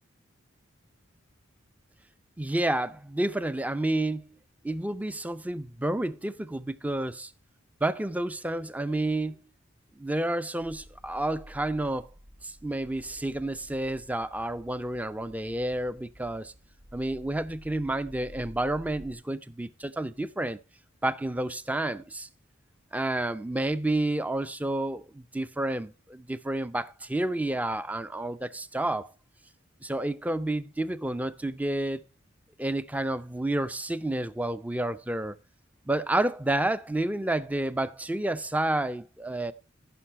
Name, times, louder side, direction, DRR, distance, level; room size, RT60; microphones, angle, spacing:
voice 1, 2.4-4.3 4.6-7.3 7.8-9.3 10.0-12.1 12.4-16.5 16.9-20.6 21.0-22.3 22.9-29.1 29.8-32.0 32.6-35.4 35.9-39.5, right 1 dB, 5° right, 0.5 m, -30 dB
sound 1, 10.6-19.1, equal, 55° right, 1.8 m, -51 dB
14.5 x 6.1 x 4.4 m
head